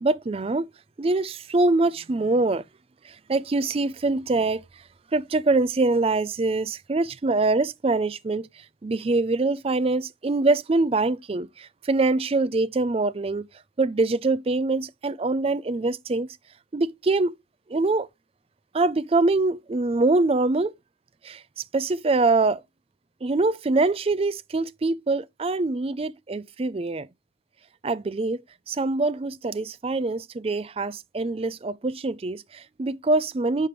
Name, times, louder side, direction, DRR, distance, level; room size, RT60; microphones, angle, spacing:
voice 1, 0.0-0.7 1.0-2.6 3.3-4.6 5.1-8.5 8.8-13.4 13.8-16.3 16.7-17.3 17.7-18.1 18.7-20.7 21.2-21.4 21.7-22.6 23.2-27.1 27.8-28.4 28.7-33.7, right 3 dB, 30° right, 0.4 m, -24 dB
7.6 x 5.0 x 3.1 m
head